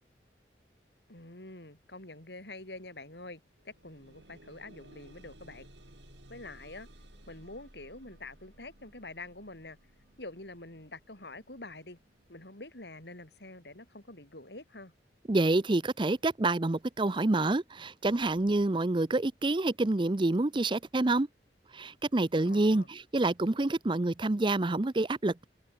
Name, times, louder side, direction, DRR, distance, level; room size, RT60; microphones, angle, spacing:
voice 1, 1.1-5.7 6.3-6.9 7.3-9.8 10.2-12.0 12.3-14.9 22.5-22.9, left 2 dB, 70° left, 5.5 m, -46 dB
sound 1, 3.5-14.2 15.0-15.1 15.6-15.7, right 1 dB, 85° right, 6.7 m, -57 dB
voice 2, 15.3-21.3 21.7-25.5, right 2 dB, 25° right, 0.6 m, -27 dB
head